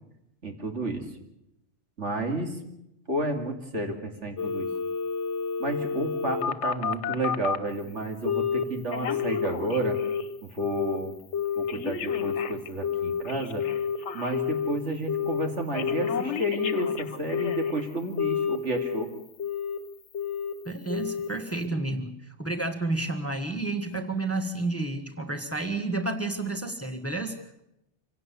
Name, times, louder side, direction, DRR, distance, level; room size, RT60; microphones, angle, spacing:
voice 1, 0.4-1.0 2.0-2.6 3.1-4.7 5.6-10.0 10.4-11.1 11.6-13.6 14.1-19.1, right 1 dB, 75° right, 3 dB, 2.9 m, -31 dB
Telephone, 4.4-7.7 8.3-8.6 8.9-10.3 10.6-11.0 11.3-14.7 15.1-15.5 15.7-17.8 18.2-19.0 19.4-19.8 20.1-20.5 20.9-21.3 21.6-21.7, left 7 dB, 70° left, 1.3 m, -29 dB
voice 2, 20.6-27.6, right 2 dB, 10° left, 4 dB, 1.5 m, -31 dB
26.5 x 17.0 x 6.9 m, 0.86 s
omnidirectional pair, 1.2 m